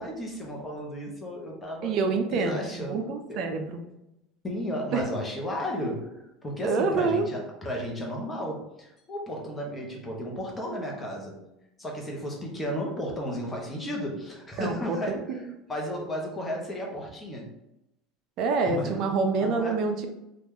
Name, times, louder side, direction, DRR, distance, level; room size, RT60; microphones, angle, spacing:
voice 1, 0.0-2.0 2.3-3.5 4.4-6.1 6.4-11.5 11.8-15.4 15.7-17.5 18.7-19.1 19.4-19.8, equal, 15° left, -1 dB, 0.9 m, -34 dB
voice 2, 1.8-3.8 4.9-5.1 6.6-7.3 14.6-15.0 18.4-20.1, right 4 dB, 55° right, 6 dB, 0.4 m, -27 dB
2.9 x 2.4 x 3.6 m, 0.88 s
supercardioid pair, 125°, 0 cm